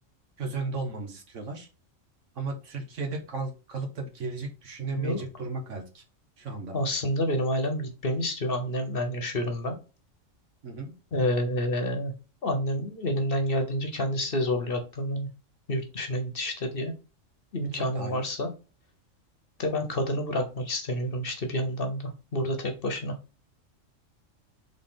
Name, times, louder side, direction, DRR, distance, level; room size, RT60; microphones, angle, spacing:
voice 1, 0.4-1.7 2.3-6.0 6.4-6.7 10.6-10.9 17.7-18.2, right 3 dB, 70° right, 4 dB, 1.5 m, -35 dB
voice 2, 6.7-9.8 11.1-12.1 12.4-15.3 15.7-16.9 17.5-18.5 19.6-23.1, left 1 dB, 50° left, 5 dB, 1.1 m, -29 dB
4.2 x 3.5 x 3.7 m, 0.33 s
omnidirectional pair, 1.3 m